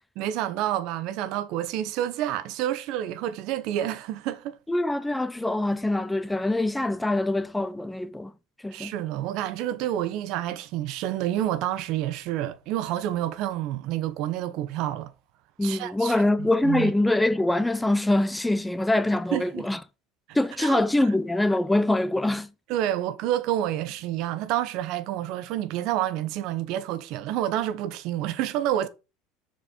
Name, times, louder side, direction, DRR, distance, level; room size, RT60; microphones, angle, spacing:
voice 1, 0.2-4.6 8.7-15.1 15.6-16.1 16.6-16.9 19.3-19.6 20.6-20.8 22.7-28.9, right 12 dB, 60° right, 0.8 m, -28 dB
voice 2, 4.7-8.3 8.6-8.9 15.6-19.8 20.3-22.5, left 1 dB, 5° left, 0.4 m, -24 dB
6.8 x 4.6 x 5.1 m
supercardioid pair, 135°, 0 cm